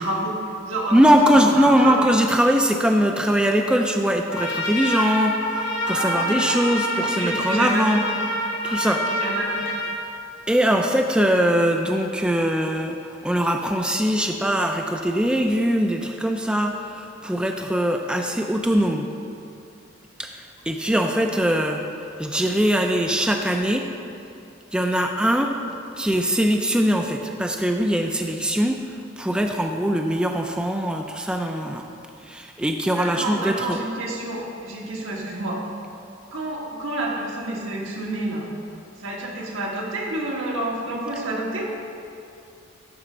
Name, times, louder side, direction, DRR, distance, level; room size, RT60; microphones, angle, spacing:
voice 1, 0.0-2.2 5.8-8.1 8.9-9.7 20.8-21.0 32.9-35.6 36.3-38.5 39.0-41.7, right 2 dB, 80° right, -2 dB, 1.5 m, -29 dB
voice 2, 0.9-8.1 8.6-9.1 10.5-13.0 13.2-19.1 20.2-21.8 22.2-23.9 24.7-25.5 26.0-28.8 29.2-31.8 32.3-33.8, equal, 5° right, 3 dB, 0.3 m, -21 dB
Trumpet, 4.3-10.0, equal, 75° left, 1.2 m, -26 dB
12.0 x 4.4 x 5.0 m, 2.6 s
head